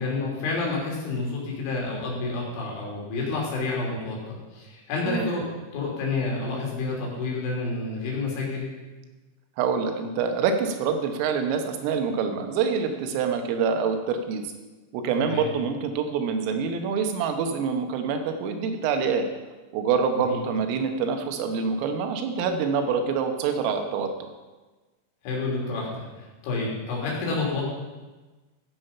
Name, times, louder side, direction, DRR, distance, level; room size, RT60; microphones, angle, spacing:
voice 1, 0.0-5.5 5.7-8.7 15.2-15.5 20.2-20.4 25.2-27.6, left 3 dB, 70° left, -3 dB, 5.4 m, -29 dB
voice 2, 9.6-14.4 14.9-19.3 19.7-24.3, right 6 dB, 85° right, 5 dB, 3.8 m, -26 dB
15.5 x 7.6 x 5.6 m, 1.2 s
omnidirectional pair, 5.8 m